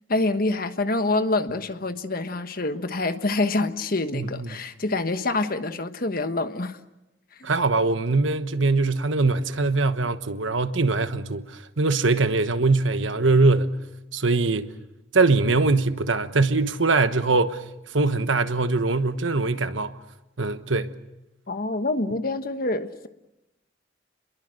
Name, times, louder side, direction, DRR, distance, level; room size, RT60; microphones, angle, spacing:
voice 1, 0.1-6.8 7.3-7.5 21.5-23.1, left 2 dB, 50° left, 1.3 m, -26 dB
voice 2, 4.1-4.5 7.4-13.8 14.1-14.7 15.1-17.6 17.9-19.9 20.4-20.9, right 3 dB, 85° right, 1.3 m, -22 dB
30.0 x 22.0 x 6.6 m
head